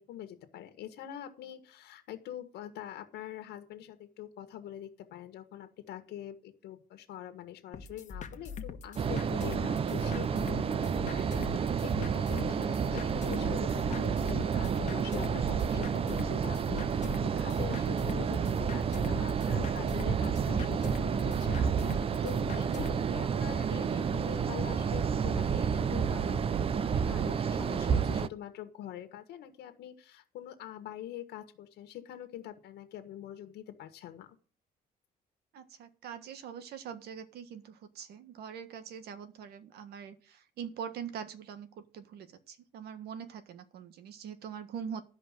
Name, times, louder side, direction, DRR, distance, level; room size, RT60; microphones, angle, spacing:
voice 1, 0.0-34.4, left 11 dB, 75° left, 8 dB, 1.7 m, -45 dB
sound 1, 7.7-23.0, left 6 dB, 45° left, 1.3 m, -42 dB
sound 2, 9.0-28.3, right 7 dB, 35° right, 0.6 m, -30 dB
voice 2, 35.5-45.0, right 7 dB, 70° right, 11 dB, 1.6 m, -43 dB
13.0 x 5.2 x 7.5 m, 0.41 s
cardioid pair, 110°, 17 cm